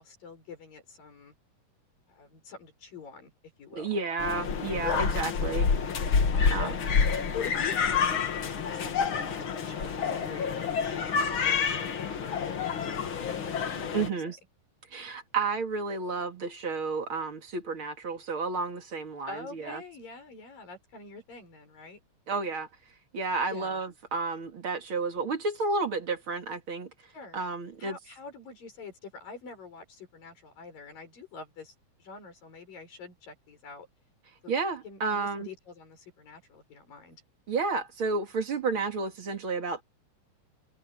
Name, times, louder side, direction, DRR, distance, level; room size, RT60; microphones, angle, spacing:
voice 1, 0.0-1.3 2.2-3.3 3.6-3.9 4.9-5.0 6.3-8.0 8.7-14.0 19.3-22.0 23.5-23.8 27.1-27.4 27.8-31.7 32.0-33.9 34.4-34.5 34.8-37.2, left 5 dB, 90° left, 8.8 m, -45 dB
voice 2, 3.7-5.7 6.5-6.8 13.9-14.4 14.9-19.8 22.3-22.7 23.1-26.9 27.3-28.0 34.5-35.5 37.5-39.8, right 4 dB, 40° right, 2.9 m, -31 dB
sound 1, 4.2-14.1, left 6 dB, 45° left, 2.1 m, -28 dB
omnidirectional pair, 3.8 m